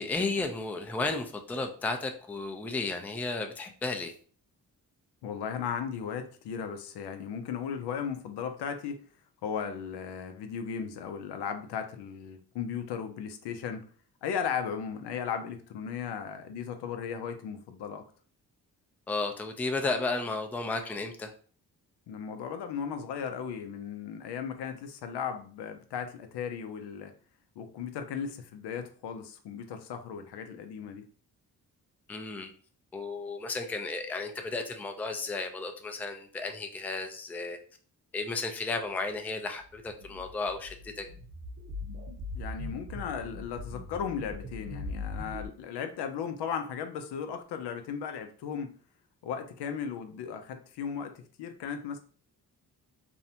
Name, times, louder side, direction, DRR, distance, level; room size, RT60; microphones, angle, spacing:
voice 1, 0.0-4.1 19.1-21.3 32.1-32.5 32.9-37.6 38.1-41.1, left 3 dB, 5° left, 5 dB, 0.3 m, -33 dB
voice 2, 5.2-9.0 9.4-13.8 14.2-18.0 22.1-27.1 27.6-31.0 42.3-48.7 49.2-52.0, left 7 dB, 70° left, 7 dB, 0.5 m, -36 dB
sound 1, 39.7-45.5, left 2 dB, 55° right, 0.8 m, -40 dB
2.6 x 2.0 x 2.7 m, 0.43 s
supercardioid pair, 50°, 42 cm